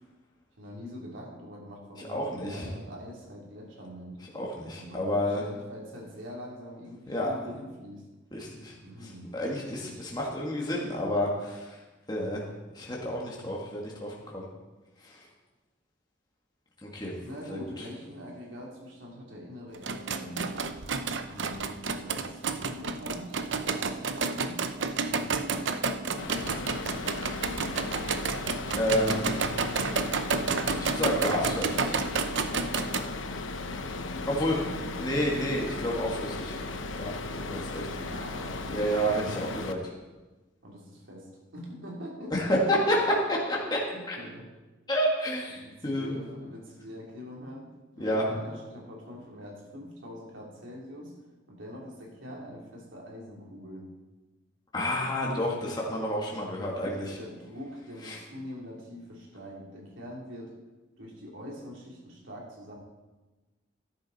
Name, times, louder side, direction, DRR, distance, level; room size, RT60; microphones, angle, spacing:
voice 1, 0.6-4.2 4.7-8.0 8.8-10.0 17.2-20.5 21.3-24.7 25.1-26.8 33.8-35.1 37.3-39.3 40.6-42.3 43.9-44.5 45.5-47.7 47.9-51.1 51.5-53.9 55.2-55.8 56.6-60.5 61.0-62.8, equal, 90° right, -2 dB, 3.3 m, -44 dB
voice 2, 2.1-2.7 4.3-5.4 7.1-7.3 8.3-8.8 9.0-11.8 12.1-12.4 12.7-14.5 15.0-15.2 16.8-17.2 17.5-17.6 27.0-27.1 28.8-29.5 30.8-32.0 34.3-34.6 35.0-36.6 36.9-37.9 38.7-39.9 42.3-43.8 44.1-44.2 44.9-46.2 48.0-48.3 54.7-57.2 58.0-58.2, equal, 20° left, -3 dB, 1.8 m, -30 dB
sound 1, 19.7-33.0, right 4 dB, 70° right, 0.7 m, -30 dB
sound 2, 26.2-39.7, left 3 dB, 85° left, 0.9 m, -36 dB
13.5 x 11.0 x 4.2 m, 1.2 s
head